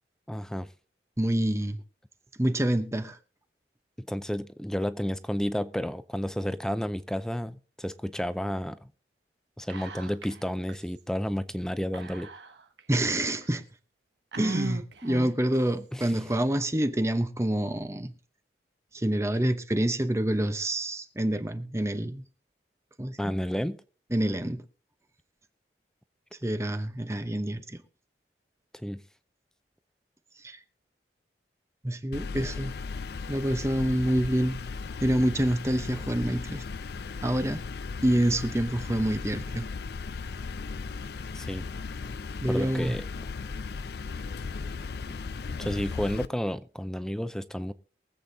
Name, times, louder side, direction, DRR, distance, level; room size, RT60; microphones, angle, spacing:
voice 1, 0.3-0.7 4.0-8.9 9.6-12.3 15.9-16.1 23.2-23.8 28.8-29.0 41.3-41.7 42.5-43.0 45.1-45.2 45.6-47.7, equal, 5° left, 0.4 m, -31 dB
voice 2, 1.2-1.8 2.4-3.2 12.9-13.6 14.4-18.1 18.9-22.2 23.0-23.4 24.1-24.6 26.4-27.8 30.4-30.6 31.8-32.7 33.3-34.6 35.0-36.6 37.2-37.6 38.0-39.7 42.4-43.0, right 1 dB, 15° right, 0.8 m, -27 dB
Whispering, 9.7-10.4 10.7-10.8 11.9-12.8 13.4-13.5 14.3-15.5, right 2 dB, 80° right, 1.2 m, -37 dB
sound 1, 32.1-46.3, left 4 dB, 60° left, 0.5 m, -36 dB
23.5 x 8.0 x 2.7 m
head